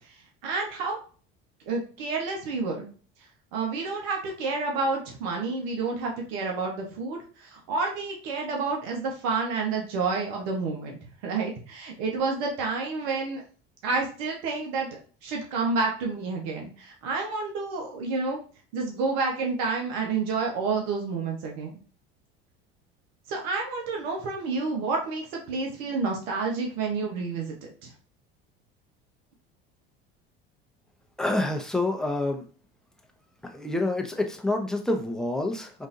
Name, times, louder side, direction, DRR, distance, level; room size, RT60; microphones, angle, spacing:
voice 1, 0.4-1.0 1.7-2.9 3.5-13.4 13.8-18.4 18.7-21.7 23.3-27.5 27.8-27.9, right 4 dB, 75° right, 1 dB, 1.0 m, -29 dB
voice 2, 31.2-32.5 33.4-35.9, left 2 dB, ahead, 3 dB, 0.6 m, -27 dB
3.8 x 2.6 x 2.6 m, 0.39 s
hypercardioid pair, 80°, 30 cm